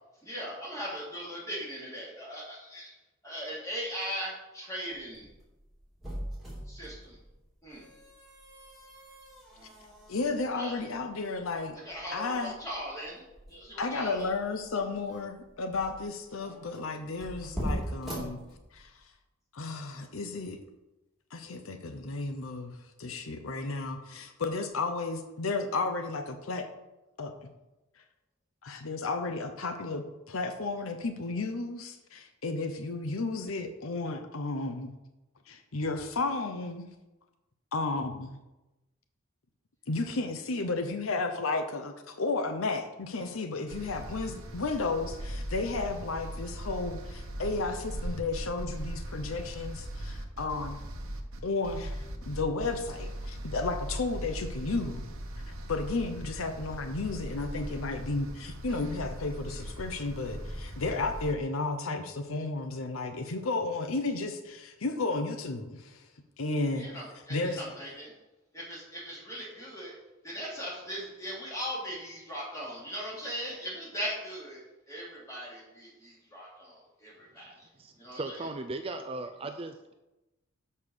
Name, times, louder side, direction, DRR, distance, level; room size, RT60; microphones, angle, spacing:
voice 1, 0.2-2.9 3.2-5.3 6.7-7.2 7.6-7.9 10.5-10.8 11.8-14.3 66.7-68.1 68.5-69.9 70.2-77.5 78.0-78.5, equal, 15° left, -5 dB, 2.5 m, -39 dB
sound 1, 4.9-19.1, equal, ahead, 2.7 m, -42 dB
voice 2, 10.1-11.8 12.1-12.6 13.8-18.4 18.7-18.9 19.5-20.6 21.3-26.7 27.2-27.3 28.6-34.9 35.5-36.9 37.7-38.4 39.9-50.8 51.4-55.0 55.7-66.0 66.4-66.9 67.3-67.6, left 3 dB, 80° left, 7 dB, 0.7 m, -33 dB
sound 2, 43.7-61.4, right 1 dB, 85° right, 1.0 m, -39 dB
voice 3, 77.8-79.7, right 2 dB, 25° right, 7 dB, 0.4 m, -37 dB
6.7 x 5.5 x 6.3 m, 1.0 s
head